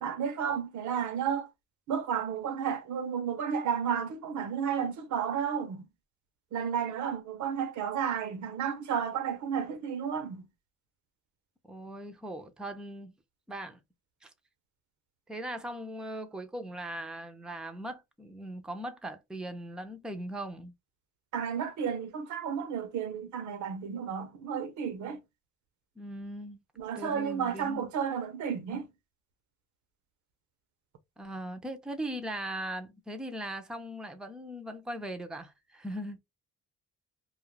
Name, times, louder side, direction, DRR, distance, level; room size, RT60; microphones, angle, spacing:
voice 1, 0.0-1.5 1.9-5.9 6.5-10.5 21.3-25.2 26.8-28.9, right 7 dB, 70° right, 0.7 m, -32 dB
voice 2, 11.7-13.1 13.5-13.8 14.2-14.3 15.3-20.7 26.0-26.6 27.0-27.9 31.2-36.2, right 1 dB, ahead, 0.5 m, -39 dB
2.4 x 2.0 x 3.1 m
cardioid pair, 90°, 30 cm